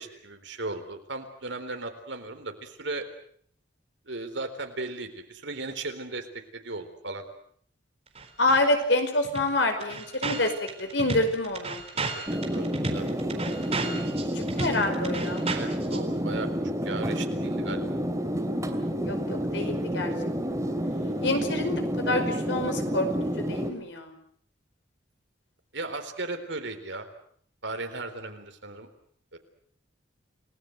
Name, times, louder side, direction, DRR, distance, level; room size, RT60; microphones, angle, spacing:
voice 1, 0.0-3.1 4.1-6.3 6.5-7.2 11.9-13.2 15.5-16.5 16.8-18.0 25.7-27.1 27.6-28.9 29.3-29.4, right 2 dB, 70° right, 7 dB, 4.0 m, -36 dB
sound 1, 8.2-8.6 8.9-9.0 9.2-16.0, right 3 dB, 35° right, 4.0 m, -34 dB
voice 2, 8.4-10.5 10.8-11.8 14.3-15.5 19.0-20.1 21.2-23.1 23.5-24.1, left 2 dB, 65° left, 6 dB, 5.3 m, -27 dB
sound 2, 12.3-23.7, equal, 15° right, 2.8 m, -29 dB
30.0 x 19.5 x 8.0 m, 0.62 s
head